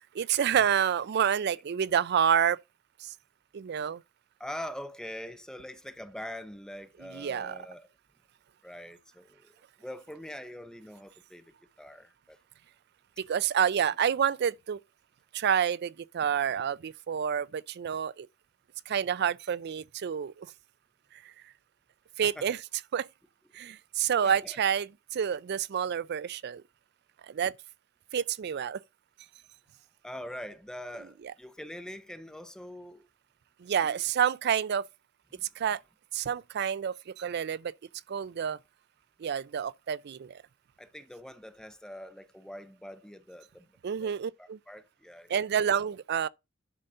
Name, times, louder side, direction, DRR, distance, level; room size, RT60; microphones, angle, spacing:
voice 1, 0.1-2.6 3.0-3.1 3.5-4.0 7.1-7.6 13.3-14.8 15.3-18.3 18.9-20.5 22.2-22.6 22.9-23.1 23.5-26.6 27.3-27.5 28.1-28.8 33.6-34.9 35.6-35.8 36.1-37.7 38.1-38.6 39.2-40.4 43.8-44.6 45.3-46.3, right 8 dB, 55° right, 0.4 m, -28 dB
voice 2, 4.4-7.9 8.6-9.5 9.8-11.4 11.8-12.4 22.2-22.6 23.7-23.8 24.2-24.6 30.0-33.1 33.8-34.0 35.4-35.5 40.8-43.7 44.0-45.4, equal, 5° left, 0.5 m, -43 dB
10.0 x 3.9 x 5.5 m
head